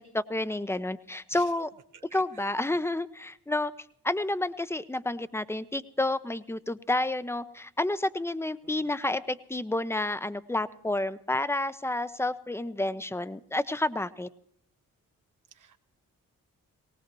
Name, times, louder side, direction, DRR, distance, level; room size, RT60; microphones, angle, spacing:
voice 1, 0.0-1.7 2.1-3.7 4.0-14.3, left 2 dB, 5° left, 14 dB, 0.7 m, -30 dB
voice 2, 1.9-2.5 8.6-8.9 15.5-15.8, right 7 dB, 60° right, 6 dB, 0.9 m, -52 dB
19.0 x 18.5 x 3.0 m, 0.67 s
cardioid pair, 55°, 34 cm